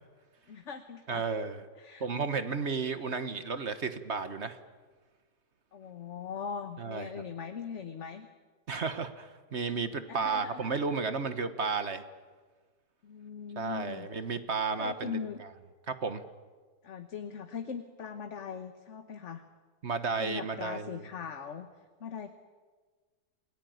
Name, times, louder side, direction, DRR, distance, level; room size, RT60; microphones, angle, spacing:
voice 1, 0.5-1.2 1.8-2.1 5.7-8.3 10.1-10.8 13.0-14.1 14.8-15.4 16.8-19.4 20.2-21.7 22.0-22.3, left 6 dB, 45° left, 7 dB, 1.4 m, -40 dB
voice 2, 1.1-1.6 2.0-4.6 6.8-7.1 8.7-12.0 13.6-15.5 15.9-16.2 19.8-21.0, right 4 dB, 40° right, 10 dB, 1.4 m, -33 dB
28.5 x 18.5 x 9.4 m, 1.4 s
omnidirectional pair, 1.9 m